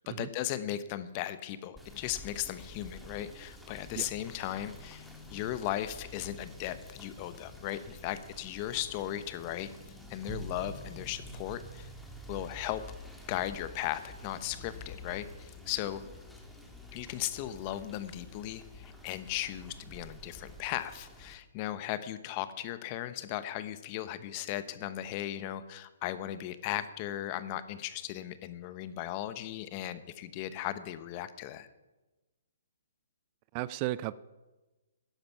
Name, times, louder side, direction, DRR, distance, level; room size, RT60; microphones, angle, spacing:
voice 1, 0.2-5.0 5.3-9.7 10.1-11.9 12.3-12.8 13.3-16.0 16.9-31.7, left 13 dB, 35° left, 13 dB, 0.9 m, -37 dB
Rain / Motor vehicle (road), 1.7-21.3, equal, ahead, 1.6 m, -48 dB
voice 2, 33.5-34.1, right 16 dB, 35° right, 18 dB, 0.4 m, -34 dB
12.5 x 10.5 x 5.8 m, 1.1 s
hypercardioid pair, 140°, 0 cm